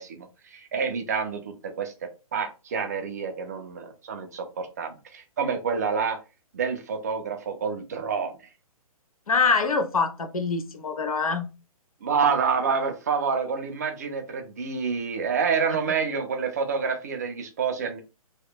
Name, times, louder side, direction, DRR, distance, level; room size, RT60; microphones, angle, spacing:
voice 1, 0.0-1.9 2.3-6.2 6.5-8.3 12.0-18.0, right 5 dB, 30° right, 0.3 m, -28 dB
voice 2, 9.3-11.5, left 4 dB, 70° left, 0.5 m, -24 dB
2.7 x 2.1 x 2.2 m
figure-of-eight pair, 130°, 19 cm